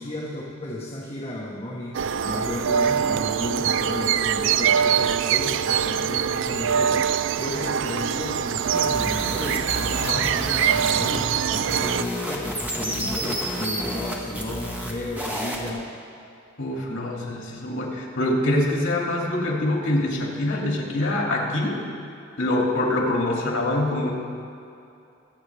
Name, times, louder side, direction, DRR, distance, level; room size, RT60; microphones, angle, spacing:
voice 1, 0.0-2.0 2.2-15.9, left 1 dB, 30° left, -5 dB, 1.3 m, -33 dB
sound 1, 1.9-12.0, right 8 dB, 60° right, 0.3 m, -23 dB
sound 2, 8.6-15.7, equal, 10° right, 1.3 m, -31 dB
voice 2, 16.6-21.8 22.4-24.1, left 1 dB, 75° left, -2 dB, 2.6 m, -24 dB
23.5 x 8.1 x 3.4 m, 2.7 s
head